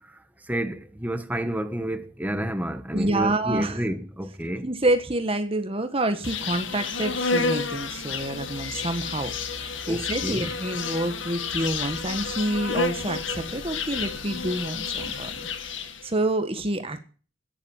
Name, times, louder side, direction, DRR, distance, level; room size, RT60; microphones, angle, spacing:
voice 1, 0.5-4.7 9.9-10.5, right 1 dB, 10° right, 1.3 m, -30 dB
voice 2, 2.9-3.8 4.6-9.3 9.6-15.5 15.8-17.0, right 1 dB, 30° right, 1.4 m, -28 dB
Insect, 6.2-16.1, left 5 dB, 75° left, 1.9 m, -30 dB
13.5 x 10.5 x 8.5 m
head